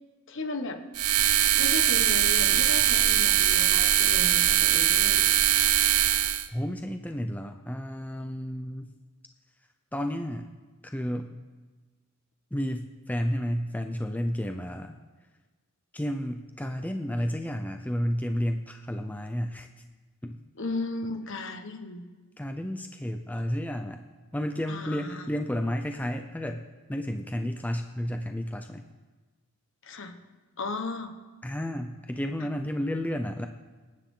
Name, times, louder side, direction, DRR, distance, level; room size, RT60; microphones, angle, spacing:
voice 1, 0.3-0.8 1.5-5.2 20.6-22.1 24.7-25.2 29.8-30.2 30.6-31.1, left 2 dB, 60° left, 6 dB, 1.4 m, -35 dB
sound 1, 0.9-6.5, right 12 dB, 80° right, 0.7 m, -22 dB
voice 2, 6.5-8.9 9.9-10.5 10.8-11.3 12.5-14.9 15.9-19.7 20.2-20.4 22.4-24.0 24.3-28.9 31.4-33.5, equal, 5° left, 5 dB, 0.6 m, -31 dB
26.0 x 9.2 x 3.8 m, 1.3 s
head